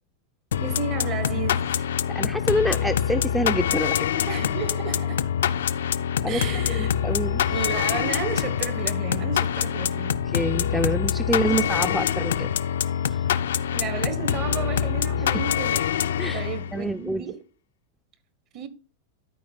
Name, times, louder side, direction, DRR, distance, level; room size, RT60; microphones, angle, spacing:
sound 1, 0.5-16.8, left 9 dB, 60° left, 0.4 m, -25 dB
voice 1, 0.6-1.9 4.3-5.2 6.3-7.0 7.5-10.3 13.7-16.0 16.3-17.4 18.5-18.7, right 8 dB, 35° right, 1.1 m, -33 dB
voice 2, 2.1-4.2 6.2-6.4 6.7-7.5 10.3-12.5 12.9-13.3 16.2-17.3, equal, ahead, 0.4 m, -27 dB
11.5 x 4.7 x 4.0 m
figure-of-eight pair, 90°, 0 cm